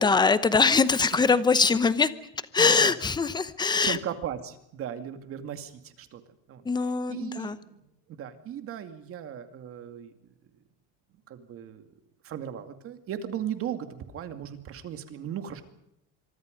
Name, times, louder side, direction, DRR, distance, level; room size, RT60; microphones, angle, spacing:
voice 1, 0.0-2.1 2.5-4.0 6.6-7.6, left 4 dB, 10° left, 14 dB, 0.9 m, -22 dB
voice 2, 2.6-2.9 3.8-6.2 6.5-6.6 7.1-7.8 8.1-10.1 11.3-11.8 12.2-15.6, right 9 dB, 40° right, 8 dB, 2.4 m, -37 dB
25.5 x 23.5 x 5.3 m, 0.81 s
cardioid pair, 155°, 36 cm